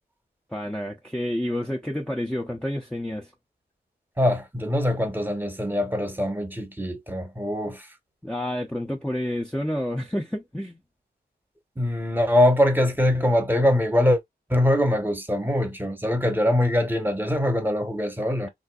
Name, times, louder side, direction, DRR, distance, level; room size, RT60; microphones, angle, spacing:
voice 1, 0.5-3.3 8.2-10.8, left 1 dB, 5° left, 0.6 m, -29 dB
voice 2, 4.2-7.9 11.8-14.2 14.5-18.5, left 1 dB, 10° right, 0.9 m, -23 dB
3.7 x 2.6 x 2.3 m
wide cardioid pair, 95°, 18 cm